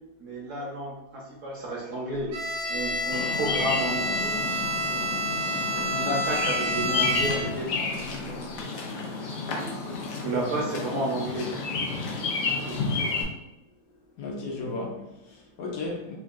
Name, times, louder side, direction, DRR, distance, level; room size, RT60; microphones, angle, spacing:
voice 1, 0.2-2.4 2.7-4.4 4.9-8.7 9.4-11.6 12.6-13.1, right 1 dB, 60° right, -3 dB, 0.9 m, -32 dB
Bowed string instrument, 2.3-7.7, equal, 85° right, 1.2 m, -29 dB
Bird vocalization bird call bird song, 3.1-13.2, left 4 dB, 90° left, 1.2 m, -31 dB
voice 2, 14.2-16.2, left 3 dB, 70° left, -1 dB, 1.0 m, -35 dB
3.7 x 2.3 x 2.4 m, 0.91 s
omnidirectional pair, 1.7 m